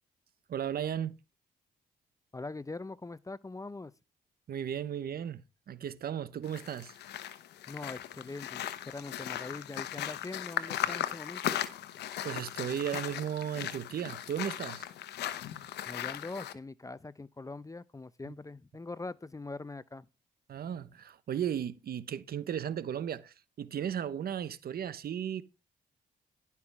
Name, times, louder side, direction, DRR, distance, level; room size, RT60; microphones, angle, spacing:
voice 1, 0.5-1.2 4.5-5.4 5.7-6.9 12.2-14.9 18.2-18.3 20.5-25.4, right 9 dB, 65° right, 1.0 m, -35 dB
voice 2, 2.3-3.9 7.7-11.6 15.9-20.1, left 3 dB, 20° left, 0.7 m, -42 dB
gravel crunch - walk on gravel, 6.4-16.5, left 11 dB, 90° left, 1.0 m, -38 dB
11.5 x 5.9 x 4.7 m
cardioid pair, 70°, 17 cm